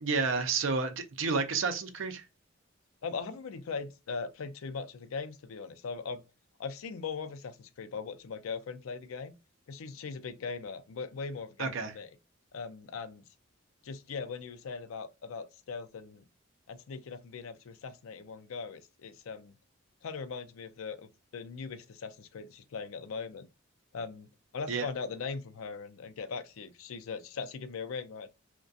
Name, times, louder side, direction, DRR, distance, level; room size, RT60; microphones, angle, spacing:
voice 1, 0.0-2.2 11.6-11.9 24.7-24.9, right 4 dB, 70° right, 0.5 m, -30 dB
voice 2, 3.0-6.2 6.6-9.3 9.7-12.1 12.5-13.2 13.8-16.2 16.7-19.5 20.0-23.5 23.9-24.3 24.5-28.3, left 5 dB, 90° left, 0.4 m, -40 dB
2.3 x 2.2 x 2.5 m
head